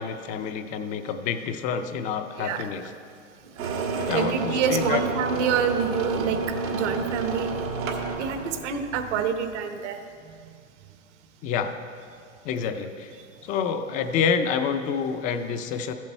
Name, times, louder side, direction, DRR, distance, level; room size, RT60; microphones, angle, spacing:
voice 1, 0.0-2.9 3.9-5.0 11.4-11.7 12.4-13.1 13.4-15.9, left 6 dB, 20° left, 8 dB, 0.4 m, -28 dB
sound 1, 3.6-8.6, right 4 dB, 85° right, 1.6 m, -29 dB
voice 2, 4.1-7.6 8.2-10.0 12.6-12.7, right 7 dB, 60° right, 8 dB, 1.1 m, -27 dB
13.5 x 7.5 x 4.4 m, 2.3 s
hypercardioid pair, 125°, 40 cm